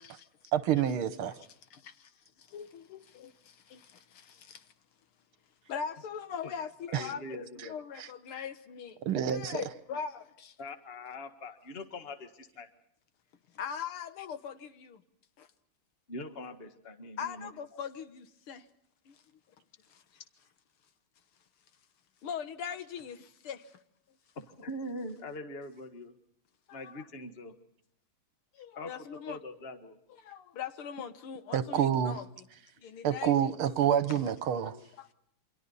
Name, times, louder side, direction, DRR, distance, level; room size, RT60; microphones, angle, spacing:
voice 1, 0.5-1.3 6.9-7.1 8.0-8.1 9.0-9.6 31.5-32.2 33.0-34.8, right 9 dB, 80° right, 2.0 m, -28 dB
voice 2, 1.7-2.1 2.4-4.7 5.7-10.6 13.5-15.0 15.4-15.5 17.2-18.7 19.1-19.2 19.9-20.0 22.2-23.8 26.7-27.0 28.5-29.4 30.2-32.3 32.8-33.6 33.9-34.2 34.7-35.1, left 7 dB, 80° left, 2.1 m, -41 dB
voice 3, 6.9-7.7 10.6-12.7 16.1-17.5 20.1-20.2 24.4-26.1 26.7-27.5 28.8-28.9 29.3-30.0, left 1 dB, 30° left, 1.7 m, -42 dB
28.5 x 25.5 x 4.1 m
omnidirectional pair, 2.3 m